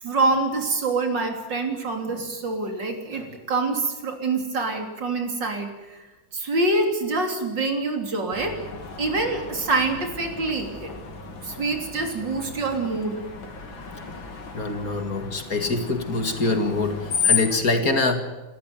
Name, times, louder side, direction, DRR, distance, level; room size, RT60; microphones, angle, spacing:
voice 1, 0.0-6.1 6.3-8.5 9.0-11.0 11.4-13.3, right 3 dB, 65° right, 4 dB, 4.0 m, -26 dB
Screech, 8.3-17.6, left 6 dB, 85° left, 3.5 m, -32 dB
voice 2, 14.5-17.0 17.2-18.2, left 3 dB, 45° left, 6 dB, 2.5 m, -24 dB
28.0 x 13.5 x 9.4 m, 1.2 s
omnidirectional pair, 2.1 m